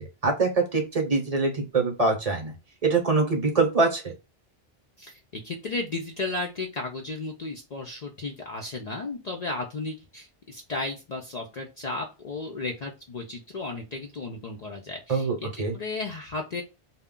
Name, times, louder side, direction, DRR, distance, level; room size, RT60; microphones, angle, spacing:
voice 1, 0.2-2.5 2.8-4.0 15.1-15.7, right 3 dB, 40° right, 2 dB, 0.8 m, -24 dB
voice 2, 5.0-16.6, left 3 dB, 50° left, 1 dB, 0.5 m, -34 dB
2.2 x 2.1 x 3.5 m, 0.28 s
omnidirectional pair, 1.0 m